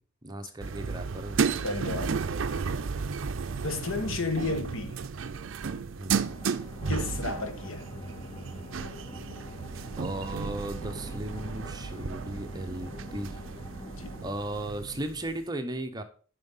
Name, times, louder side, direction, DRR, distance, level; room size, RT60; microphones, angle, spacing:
voice 1, 0.2-1.6 5.9-6.3 10.0-13.4 14.2-16.0, right 1 dB, 20° right, 0.8 m, -36 dB
sound 1, 0.6-15.4, right 5 dB, 65° right, 0.5 m, -34 dB
voice 2, 1.6-2.2 3.6-5.0 6.9-7.8 14.0-14.1, left 3 dB, 70° left, 1.3 m, -32 dB
sound 2, 6.3-14.3, left 2 dB, 20° left, 0.8 m, -45 dB
7.5 x 5.5 x 5.5 m
head